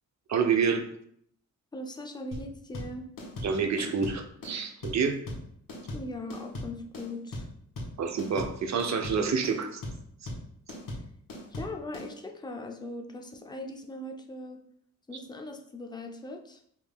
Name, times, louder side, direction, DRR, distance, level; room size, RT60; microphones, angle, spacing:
voice 1, 0.3-0.8 3.4-5.2 8.0-9.8, right 6 dB, 55° right, 6 dB, 0.6 m, -28 dB
voice 2, 1.7-3.1 5.9-7.5 11.5-14.6 15.1-16.6, left 1 dB, 15° left, 2 dB, 0.4 m, -40 dB
sound 1, 2.3-12.1, left 1 dB, 75° left, 1.5 m, -38 dB
4.9 x 3.5 x 2.2 m, 0.68 s
wide cardioid pair, 155°, 33 cm